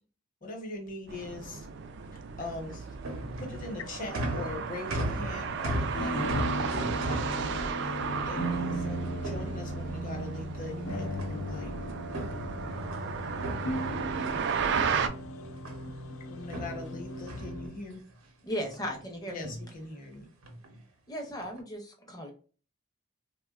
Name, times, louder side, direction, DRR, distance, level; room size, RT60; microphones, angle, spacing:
voice 1, 0.4-1.7 2.1-2.9 3.4-8.0 8.3-11.8 16.3-18.0 19.2-20.3, left 2 dB, 40° left, 0.9 m, -41 dB
sound 1, 1.1-15.1, right 6 dB, 55° right, 0.3 m, -35 dB
sound 2, 2.5-10.1 11.2-11.7 12.0-14.4 14.7-16.0 16.5-18.1 18.6-19.0 19.3-19.7 20.4-20.8 21.3-21.6, right 1 dB, 85° right, 0.7 m, -38 dB
sound 3, 5.9-17.7, equal, 90° left, 0.8 m, -36 dB
voice 2, 12.7-16.5, left 5 dB, 75° left, 0.4 m, -57 dB
voice 3, 18.4-19.4 21.1-22.3, equal, 20° left, 0.6 m, -36 dB
3.4 x 2.2 x 2.3 m
head